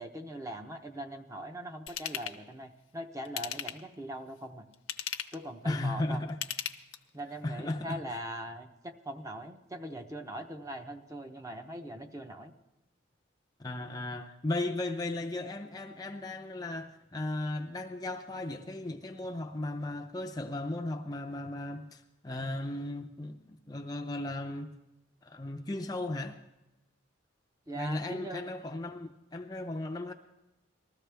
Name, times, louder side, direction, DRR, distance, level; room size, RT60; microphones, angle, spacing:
voice 1, 0.0-4.7 5.3-6.3 7.1-12.5 27.7-28.4, right 1 dB, 15° right, 0.7 m, -41 dB
Ratchet pawl / Tools, 1.9-2.4 3.2-3.9 4.7-5.4 6.3-7.2 7.7-7.8, left 10 dB, 85° left, 0.8 m, -37 dB
voice 2, 5.6-6.4 7.4-8.2 13.6-24.7 25.2-26.4 27.8-30.1, left 2 dB, 20° left, 0.5 m, -36 dB
20.0 x 14.0 x 3.4 m
head